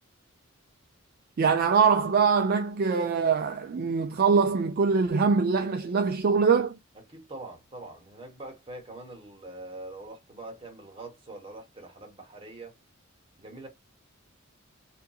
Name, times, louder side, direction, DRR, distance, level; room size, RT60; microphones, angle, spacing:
voice 1, 1.4-6.8, right 5 dB, 45° right, 0.3 m, -23 dB
voice 2, 7.1-12.8 13.4-13.7, right 2 dB, 25° right, 1.1 m, -43 dB
2.7 x 2.5 x 2.3 m
head